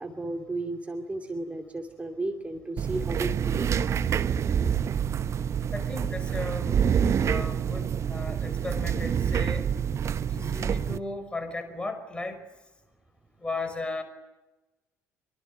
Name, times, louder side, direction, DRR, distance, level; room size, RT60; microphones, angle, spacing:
voice 1, 0.0-3.9, right 2 dB, 15° right, 4 dB, 2.6 m, -34 dB
sound 1, 2.8-11.0, right 8 dB, 40° right, 1.0 m, -27 dB
voice 2, 5.7-9.7 10.2-12.4 13.4-14.0, left 2 dB, 15° left, 8 dB, 5.8 m, -36 dB
25.0 x 24.0 x 9.3 m, 1.1 s
figure-of-eight pair, 55°, 8 cm